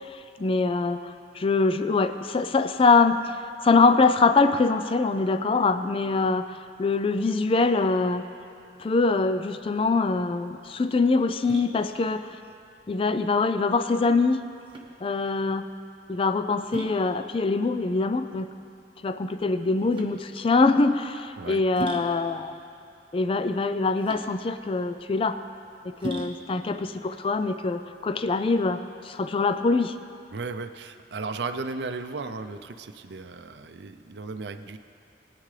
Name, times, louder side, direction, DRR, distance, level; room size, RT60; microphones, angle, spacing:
voice 1, 0.1-3.3 3.6-8.2 8.8-12.4 12.9-14.4 15.0-15.7 16.1-18.5 19.0-22.5 23.1-25.4 25.8-30.0, left 3 dB, 30° left, 10 dB, 0.4 m, -24 dB
sound 1, 10.1-28.4, equal, 30° right, 1.2 m, -41 dB
voice 2, 30.3-34.8, right 3 dB, 75° right, 9 dB, 0.6 m, -35 dB
20.5 x 9.4 x 3.3 m, 2.5 s
head